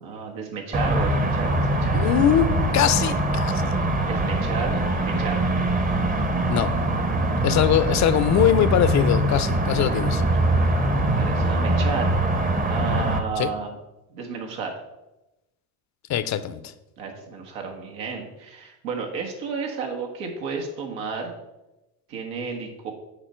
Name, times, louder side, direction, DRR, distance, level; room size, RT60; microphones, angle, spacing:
voice 1, 0.0-2.1 4.1-5.4 11.1-12.2 12.7-13.8 14.1-14.8 17.0-21.3 22.1-22.9, right 5 dB, 90° right, 1 dB, 1.5 m, -32 dB
sound 1, 0.7-13.2, right 1 dB, 15° right, 0.7 m, -23 dB
voice 2, 1.9-2.5 2.7-3.8 6.5-6.7 7.4-10.2 13.4-13.5 16.1-16.6, left 10 dB, 35° left, 13 dB, 0.5 m, -21 dB
6.9 x 4.3 x 4.4 m, 0.97 s
supercardioid pair, 95°, 49 cm